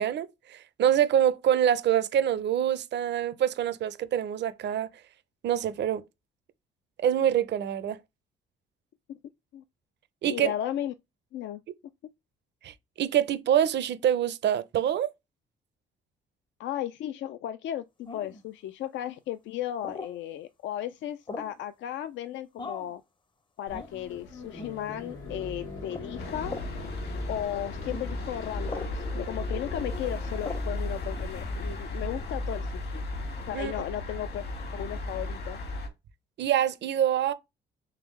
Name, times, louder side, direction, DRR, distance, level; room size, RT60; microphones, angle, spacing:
voice 1, 0.0-4.9 5.4-6.0 7.0-8.0 10.2-10.5 12.6-15.1 33.5-33.7 36.4-37.3, right 10 dB, 60° right, 0.6 m, -25 dB
voice 2, 10.3-10.9 11.3-11.6 16.6-23.0 23.6-26.5 27.3-33.0 33.5-34.4 34.7-35.6, left 11 dB, 70° left, 0.4 m, -35 dB
sound 1, 18.1-18.4 19.8-20.2 21.3-21.6 22.6-22.9 23.7-23.9 24.6-24.8 25.9-26.1 26.5-26.7 27.9-28.1 28.7-29.0 30.4-30.7, left 3 dB, 25° left, 0.6 m, -39 dB
sound 2, 23.7-30.8, left 3 dB, 90° left, 1.3 m, -43 dB
sound 3, 26.2-35.9, left 2 dB, 55° left, 1.4 m, -35 dB
3.6 x 3.4 x 3.1 m
cardioid pair, 90°, 20 cm